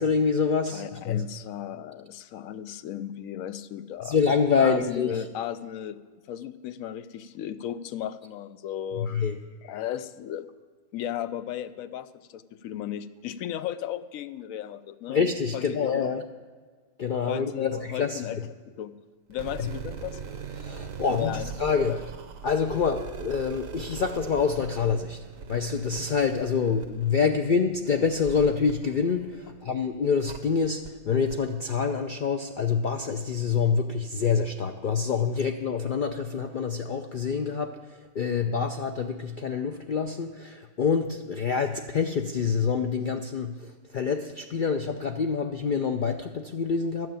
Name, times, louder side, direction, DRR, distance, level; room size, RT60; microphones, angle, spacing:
voice 1, 0.0-1.2 4.0-5.2 9.0-9.4 15.1-16.2 17.0-18.2 19.6-19.7 20.6-22.0 22.4-25.2 25.5-37.8 38.1-47.1, left 5 dB, 60° left, 5 dB, 0.5 m, -26 dB
voice 2, 0.7-4.2 4.6-6.0 6.3-9.1 9.6-10.5 10.9-15.2 15.5-16.1 17.3-18.9 19.3-20.2 21.1-21.5 21.8-22.0, left 11 dB, 75° left, 14 dB, 1.0 m, -35 dB
sound 1, 19.3-29.7 30.3-30.4 30.9-31.0 31.3-31.4, right 6 dB, 70° right, 1.2 m, -41 dB
12.5 x 6.2 x 8.7 m, 1.5 s
omnidirectional pair, 1.5 m